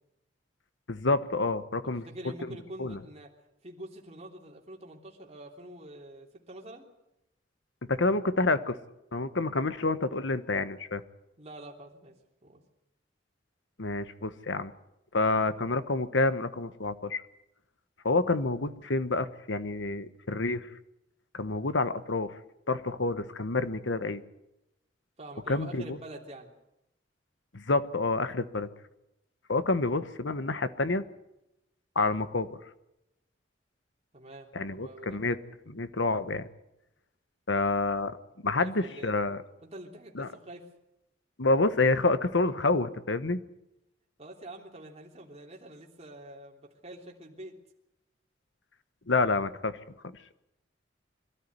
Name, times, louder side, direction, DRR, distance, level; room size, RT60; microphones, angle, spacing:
voice 1, 0.9-2.0 2.4-3.0 7.9-8.7 9.1-11.0 13.8-14.7 15.1-17.2 18.0-20.7 21.3-22.3 22.7-24.2 25.5-26.0 27.5-28.7 29.5-31.0 31.9-32.5 34.5-35.4 35.7-36.5 37.5-38.2 38.4-39.4 40.1-40.3 41.4-43.4 49.1-49.8, left 3 dB, 75° left, 12 dB, 1.2 m, -28 dB
voice 2, 2.0-3.3 3.6-6.9 11.4-12.1 12.4-12.6 25.2-26.5 34.1-35.2 38.6-39.1 39.6-40.7 44.2-47.5, right 1 dB, 35° right, 0 dB, 3.3 m, -46 dB
23.5 x 13.0 x 9.6 m, 0.89 s
head